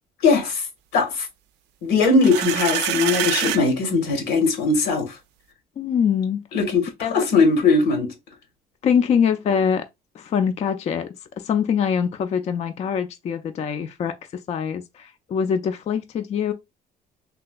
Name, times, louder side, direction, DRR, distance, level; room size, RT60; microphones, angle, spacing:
voice 1, 0.2-0.6 0.9-1.3 1.8-5.1 6.5-8.1, left 4 dB, 85° left, 1.3 m, -20 dB
sound 1, 2.0-3.6, right 11 dB, 85° right, 0.4 m, -25 dB
voice 2, 5.8-6.4 7.0-7.3 8.8-9.9 10.1-16.5, left 7 dB, 40° left, 0.4 m, -24 dB
3.4 x 2.8 x 2.2 m
cardioid pair, 110°, 17 cm